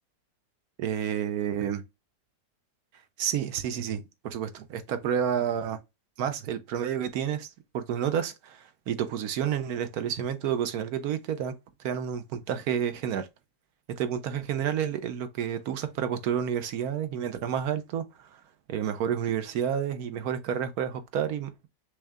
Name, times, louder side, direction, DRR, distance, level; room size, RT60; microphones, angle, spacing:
voice 1, 0.8-1.8 3.2-5.8 6.2-11.5 11.8-13.3 14.0-18.4 18.7-21.7, right 9 dB, 65° right, 1.0 m, -30 dB
6.3 x 2.3 x 3.4 m
omnidirectional pair, 1.9 m